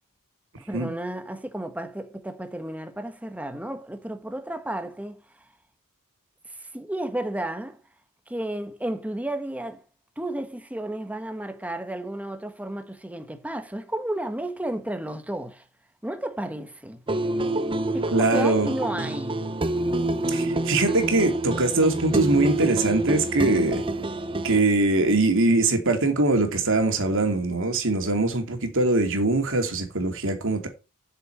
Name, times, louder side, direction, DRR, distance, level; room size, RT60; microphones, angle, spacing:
voice 1, 0.6-5.2 6.7-7.8 8.3-9.8 10.2-15.6 16.0-17.0 17.9-19.4, right 1 dB, 5° right, 1.5 m, -32 dB
sound 1, 17.1-24.6, right 1 dB, 25° right, 0.7 m, -27 dB
voice 2, 18.1-18.7 20.3-23.8 24.4-30.7, right 2 dB, 65° right, 2.7 m, -22 dB
8.2 x 6.9 x 7.9 m
head